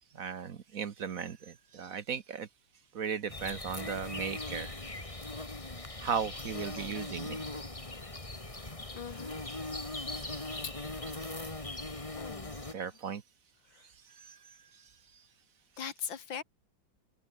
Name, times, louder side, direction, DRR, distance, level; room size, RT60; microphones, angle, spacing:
voice 1, 0.1-2.5 2.9-4.7 6.0-7.4 10.0-10.6 11.2-11.5 12.7-13.2 14.3-14.4, right 7 dB, 50° right, 1.3 m, -37 dB
sound 1, 3.3-12.7, left 2 dB, 15° left, 2.3 m, -40 dB
voice 2, 8.9-9.4 10.6-11.2 12.1-12.6 13.7-13.9 15.8-16.4, left 7 dB, 85° left, 2.6 m, -42 dB
omnidirectional pair, 2.0 m